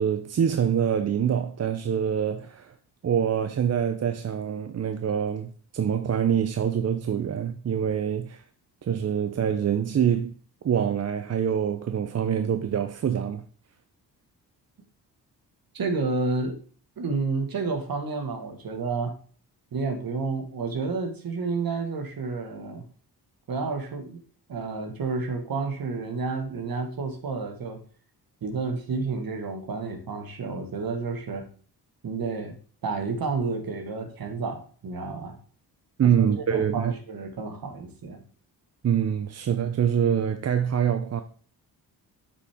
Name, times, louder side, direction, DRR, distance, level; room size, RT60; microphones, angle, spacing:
voice 1, 0.0-2.7 3.0-8.4 8.8-10.3 10.6-13.4 36.0-36.9 38.8-41.2, right 8 dB, 40° right, 0.6 m, -25 dB
voice 2, 15.7-16.6 17.0-19.1 19.7-22.8 23.5-24.2 24.5-27.8 28.4-31.5 32.0-32.5 32.8-35.4 36.0-38.2, right 4 dB, 60° right, 1.8 m, -30 dB
8.2 x 5.7 x 3.6 m
cardioid pair, 75°, 40 cm